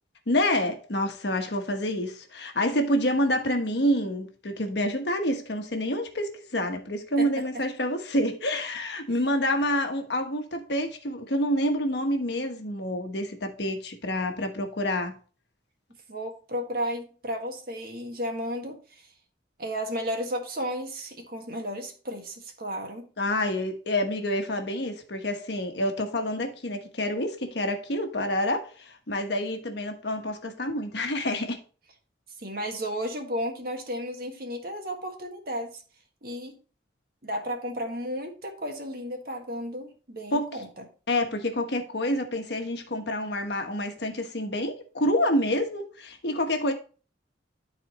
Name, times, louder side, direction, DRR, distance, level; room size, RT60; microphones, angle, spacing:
voice 1, 0.3-15.1 23.2-31.6 40.3-40.6 41.1-46.7, left 1 dB, 65° left, 1.2 m, -28 dB
voice 2, 16.1-19.0 19.6-23.1 32.4-35.8 36.2-36.6 37.2-40.8, equal, 55° right, 1.7 m, -33 dB
12.5 x 4.3 x 3.0 m
head